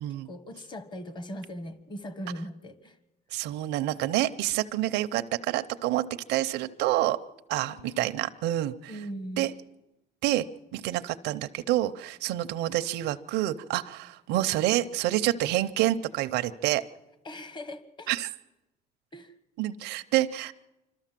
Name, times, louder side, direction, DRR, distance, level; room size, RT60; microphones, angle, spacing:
voice 1, 0.1-3.0 7.5-8.1 8.9-9.5 17.2-18.1 19.1-19.3, equal, 25° left, 13 dB, 1.4 m, -40 dB
voice 2, 3.3-7.2 7.5-8.9 9.4-9.5 10.2-10.4 10.7-16.8 18.1-18.3 19.6-20.5, right 14 dB, 90° right, 9 dB, 0.6 m, -28 dB
27.0 x 13.0 x 7.5 m, 1.0 s
cardioid pair, 110°, 17 cm